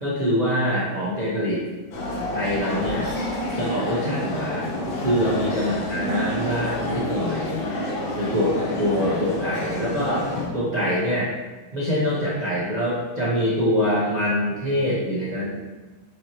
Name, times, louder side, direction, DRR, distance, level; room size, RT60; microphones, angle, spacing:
voice 1, 0.0-1.6 2.3-3.1 3.5-4.8 5.0-7.6 8.2-11.3 11.7-15.5, equal, 85° right, -8 dB, 0.3 m, -24 dB
sound 1, 1.9-10.5, left 1 dB, 85° left, 1.6 m, -28 dB
6.3 x 2.7 x 3.0 m, 1.2 s
omnidirectional pair, 2.2 m